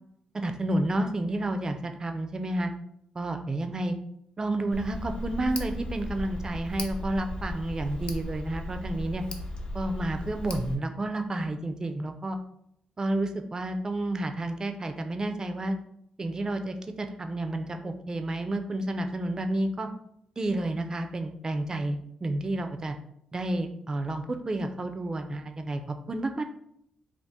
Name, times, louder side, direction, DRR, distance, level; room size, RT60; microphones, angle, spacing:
voice 1, 0.3-2.7 3.1-4.0 4.4-9.2 9.7-12.4 13.0-15.8 16.2-19.9 20.4-23.0 23.3-26.4, right 1 dB, 30° right, 6 dB, 0.4 m, -30 dB
Tick, 4.7-10.8, left 1 dB, 50° left, 0.5 m, -36 dB
2.7 x 2.4 x 3.5 m, 0.72 s
cardioid pair, 70°, 2 cm